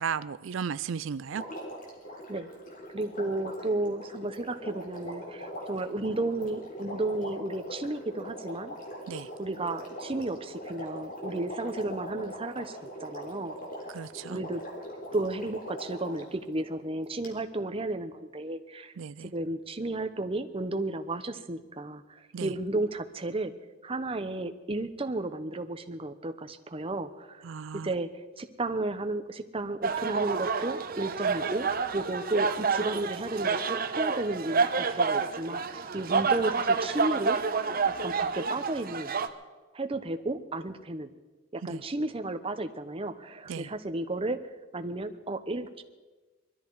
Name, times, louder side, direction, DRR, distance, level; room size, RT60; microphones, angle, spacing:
voice 1, 0.0-1.4 9.1-9.3 13.9-14.4 19.0-19.3 22.3-22.5 27.4-27.9 41.7-41.8 43.5-43.7, right 6 dB, 90° right, 15 dB, 0.4 m, -35 dB
Water, 1.3-16.3 17.2-17.3, equal, 45° left, 3.6 m, -41 dB
voice 2, 2.9-8.8 9.4-13.5 14.3-14.6 15.1-18.9 19.2-22.0 22.4-23.5 23.8-27.4 27.7-31.7 31.9-37.4 38.0-39.1 39.7-41.1 41.5-44.4 44.7-45.8, right 2 dB, 30° right, 8 dB, 0.9 m, -33 dB
sound 1, 29.8-39.3, right 5 dB, 50° right, 0.9 m, -29 dB
21.5 x 13.5 x 4.7 m, 1.2 s
head